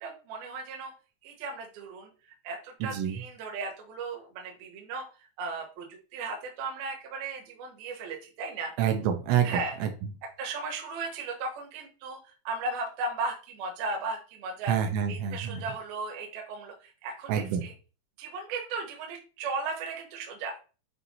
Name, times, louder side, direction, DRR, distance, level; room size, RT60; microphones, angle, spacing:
voice 1, 0.0-0.9 1.2-5.0 5.4-8.7 9.4-9.8 10.4-12.2 12.4-14.8 15.1-17.7 18.2-20.5, right 3 dB, 65° right, 1 dB, 2.8 m, -36 dB
voice 2, 2.8-3.2 8.8-9.9 14.7-15.6 17.3-17.7, right 9 dB, 80° right, 4 dB, 3.2 m, -27 dB
9.2 x 4.0 x 2.7 m, 0.35 s
omnidirectional pair, 5.4 m